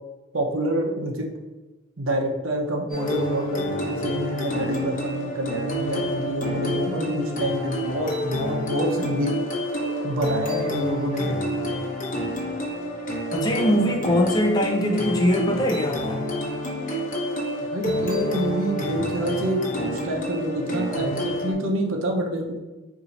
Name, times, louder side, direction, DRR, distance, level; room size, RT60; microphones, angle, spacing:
voice 1, 0.3-1.3 2.0-9.4 10.0-11.4 17.7-22.6, right 1 dB, 65° right, 1 dB, 0.8 m, -27 dB
sound 1, 2.9-21.5, equal, 40° left, 0.9 m, -28 dB
voice 2, 13.3-16.2, equal, 20° left, 1 dB, 0.4 m, -22 dB
4.2 x 2.7 x 4.0 m, 1.1 s
head